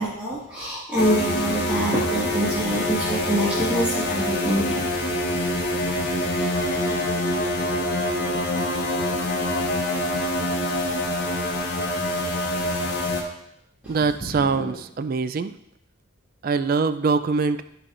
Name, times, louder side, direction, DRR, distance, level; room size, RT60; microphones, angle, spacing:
voice 1, 0.0-5.0 13.8-13.9 14.2-14.7, right 1 dB, 5° right, -9 dB, 1.7 m, -26 dB
sound 1, 1.0-13.2, left 1 dB, 50° left, 1.3 m, -25 dB
voice 2, 13.9-15.5 16.4-17.6, right 4 dB, 45° right, 12 dB, 0.3 m, -23 dB
15.0 x 5.1 x 2.5 m, 0.77 s
head